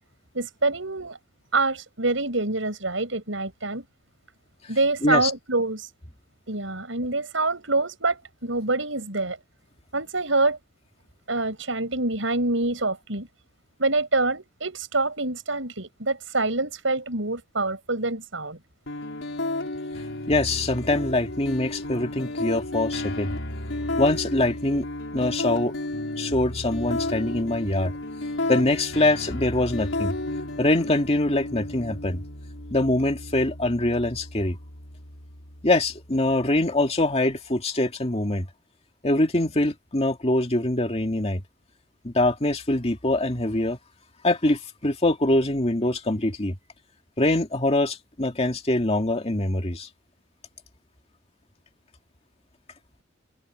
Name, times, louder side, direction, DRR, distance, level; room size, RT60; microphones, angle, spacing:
voice 1, 0.3-1.2 1.5-3.8 4.7-5.9 6.5-9.4 9.9-10.6 11.3-13.3 13.8-18.6, right 2 dB, 80° right, 6.0 m, -26 dB
sound 1, 18.9-36.8, left 2 dB, 75° left, 4.5 m, -33 dB
voice 2, 20.3-23.3 24.0-24.9 25.1-25.7 26.2-27.9 28.5-30.1 30.6-32.2 32.7-34.6 35.6-38.5 39.0-41.4 42.0-43.8 44.2-46.5 47.2-49.9, left 1 dB, 30° left, 2.3 m, -23 dB
head